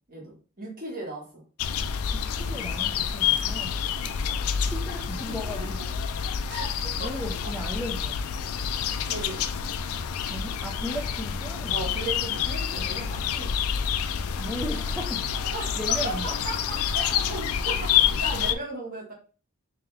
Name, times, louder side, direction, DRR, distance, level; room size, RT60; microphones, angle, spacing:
voice 1, 0.1-1.4 5.3-5.7 6.5-7.3 9.0-9.4 11.7-13.5 15.5-15.8 16.0-19.1, right 2 dB, 40° right, 1.7 m, -36 dB
sound 1, 1.6-18.5, left 8 dB, 80° left, 0.4 m, -28 dB
voice 2, 2.1-5.8 7.0-8.2 10.2-11.9 14.4-16.4, equal, ahead, 0.4 m, -37 dB
3.6 x 3.3 x 3.4 m
head